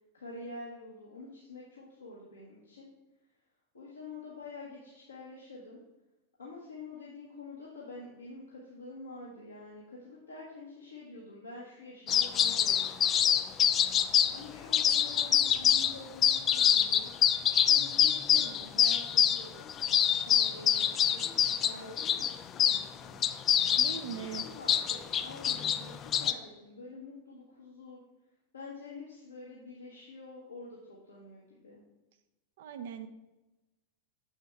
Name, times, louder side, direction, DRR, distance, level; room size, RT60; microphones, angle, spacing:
voice 1, 0.1-2.9 3.7-5.8 6.4-13.5 14.3-17.1 17.7-20.0 20.2-23.2 24.1-28.0 28.5-31.8, left 2 dB, 75° left, -6 dB, 1.5 m, -47 dB
sound 1, 12.1-14.4 14.7-15.9 16.2-22.8 23.2-26.3, left 9 dB, 30° left, 0.3 m, -26 dB
voice 2, 23.8-24.4 32.6-33.1, right 8 dB, 55° right, 8 dB, 0.6 m, -40 dB
7.3 x 6.4 x 3.5 m, 1.0 s
figure-of-eight pair, 90°, 0 cm